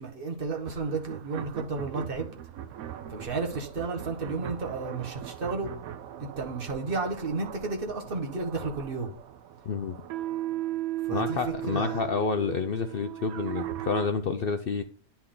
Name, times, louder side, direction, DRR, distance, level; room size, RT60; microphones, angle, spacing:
voice 1, 0.0-2.3 3.1-5.7 6.2-9.1 11.1-12.1, right 3 dB, 40° right, 1.6 m, -32 dB
sound 1, 0.6-14.1, right 13 dB, 80° right, 1.1 m, -38 dB
voice 2, 11.1-14.8, left 5 dB, 70° left, 0.5 m, -29 dB
9.9 x 4.4 x 3.8 m
omnidirectional pair, 1.6 m